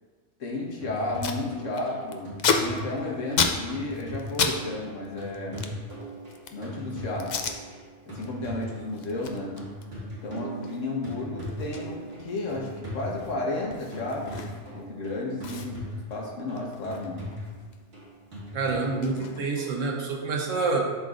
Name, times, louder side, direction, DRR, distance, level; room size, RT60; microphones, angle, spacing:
voice 1, 0.4-2.3 2.6-5.6 6.5-7.4 8.1-9.5 10.2-14.4 14.7-15.8 16.1-17.2, left 2 dB, 80° left, -2 dB, 1.5 m, -33 dB
Packing tape duct tape, 0.7-0.8 0.9-1.4 1.7-4.6 4.8-6.7 7.2-7.6 8.0-8.3 8.6-14.8 15.1-15.2 15.4-17.8 18.1-20.0, left 5 dB, 60° left, 0.4 m, -32 dB
sound 1, 0.8-19.0, equal, 55° right, 2.0 m, -39 dB
voice 2, 18.5-20.8, right 3 dB, 90° right, 0 dB, 1.3 m, -27 dB
11.0 x 4.0 x 2.5 m, 1.5 s
omnidirectional pair, 1.3 m